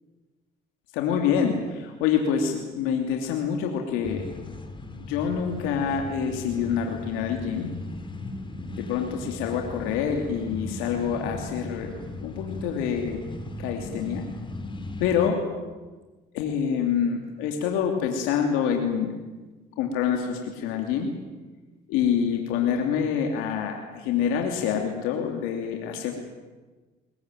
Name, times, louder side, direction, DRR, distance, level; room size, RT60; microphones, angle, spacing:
voice 1, 0.9-4.3 5.0-7.7 8.7-11.9 12.2-13.2 13.6-14.3 15.0-15.4 16.3-19.1 19.8-21.1 21.9-26.1, left 7 dB, 85° left, 3 dB, 2.9 m, -26 dB
sound 1, 4.0-15.3, left 2 dB, 25° left, 4.0 m, -37 dB
21.5 x 21.0 x 9.1 m, 1.3 s
supercardioid pair, 80°, 20 cm